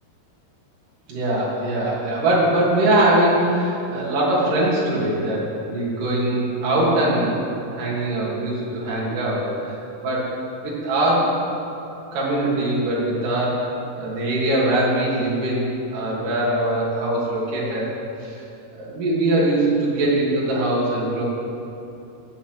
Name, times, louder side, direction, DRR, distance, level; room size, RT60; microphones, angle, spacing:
voice 1, 1.1-7.4 7.7-9.8 10.0-10.4 10.6-11.4 12.1-17.9 18.2-18.4 18.7-21.2, right 1 dB, 55° right, -6 dB, 4.4 m, -22 dB
16.5 x 7.3 x 8.4 m, 2.8 s
omnidirectional pair, 4.6 m